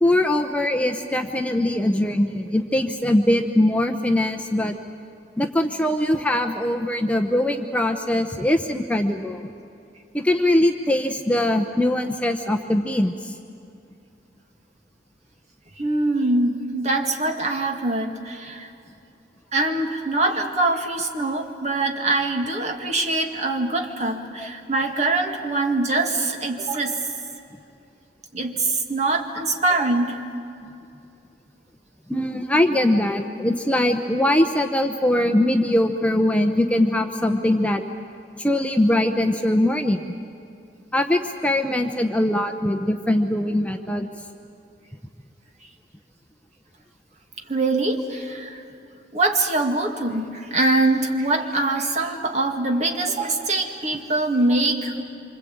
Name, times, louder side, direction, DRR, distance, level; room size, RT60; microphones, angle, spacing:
voice 1, 0.0-4.7 5.4-9.4 10.1-13.3 32.1-37.8 38.4-40.0 40.9-44.1, left 1 dB, 10° left, 4 dB, 0.8 m, -21 dB
voice 2, 15.8-18.7 19.5-27.0 28.3-30.2 47.5-48.6 49.1-55.0, right 2 dB, 40° right, 3 dB, 2.1 m, -23 dB
26.5 x 25.5 x 8.7 m, 2.6 s
head